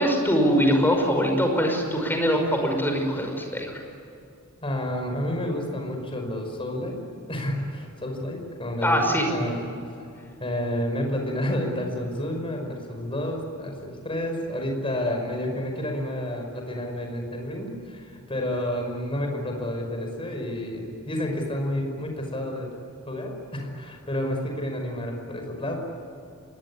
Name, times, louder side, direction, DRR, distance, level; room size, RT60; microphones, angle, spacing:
voice 1, 0.0-3.8 8.8-9.3, equal, 10° left, 3 dB, 5.4 m, -22 dB
voice 2, 4.6-7.0 7.3-9.0 9.3-9.7 10.4-22.7 23.1-25.8, left 1 dB, 25° left, 3 dB, 5.5 m, -30 dB
25.5 x 21.5 x 9.9 m, 2.6 s
head